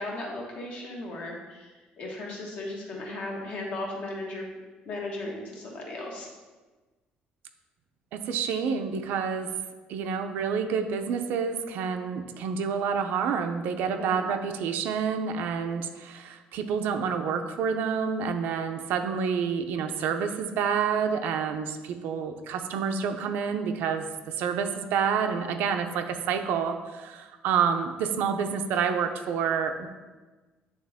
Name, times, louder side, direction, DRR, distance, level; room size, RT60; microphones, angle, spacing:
voice 1, 0.0-4.5 4.8-6.3 14.0-14.4, left 2 dB, 50° left, -1 dB, 1.3 m, -36 dB
voice 2, 8.1-9.5 9.9-24.1 24.4-29.9, right 6 dB, 80° right, 7 dB, 0.5 m, -28 dB
8.7 x 3.5 x 3.5 m, 1.3 s
cardioid pair, 165°, 3 cm